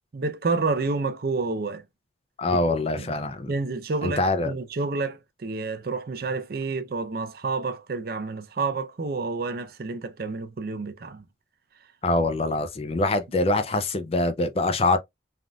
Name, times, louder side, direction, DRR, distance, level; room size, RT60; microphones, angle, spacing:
voice 1, 0.1-1.8 2.5-3.1 3.5-11.2, right 3 dB, 55° right, 0.5 m, -29 dB
voice 2, 2.4-3.5 4.0-4.5 12.0-15.0, left 2 dB, 30° left, 0.4 m, -24 dB
3.4 x 2.5 x 2.2 m
head